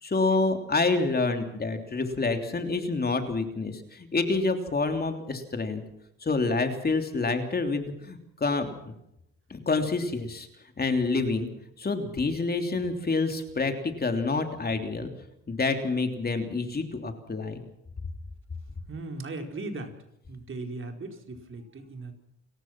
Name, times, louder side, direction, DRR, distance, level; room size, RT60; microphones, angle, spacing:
voice 1, 0.0-5.8 6.2-8.7 9.5-10.5 10.8-11.5 11.8-15.1 15.5-17.6, left 3 dB, 30° left, 6 dB, 3.2 m, -27 dB
voice 2, 18.9-20.0 20.3-22.1, right 2 dB, 40° right, 4 dB, 4.6 m, -38 dB
29.0 x 15.0 x 6.1 m, 0.80 s
cardioid pair, 90°, 30 cm